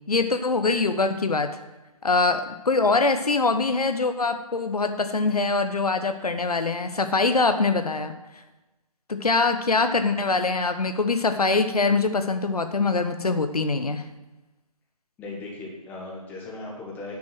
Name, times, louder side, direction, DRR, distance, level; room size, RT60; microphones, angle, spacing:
voice 1, 0.1-1.6 2.0-8.1 9.1-14.0, left 3 dB, 75° left, 8 dB, 1.0 m, -23 dB
voice 2, 15.2-17.2, left 2 dB, 10° left, -2 dB, 1.4 m, -37 dB
9.5 x 6.3 x 6.0 m, 1.1 s
figure-of-eight pair, 150°, 20 cm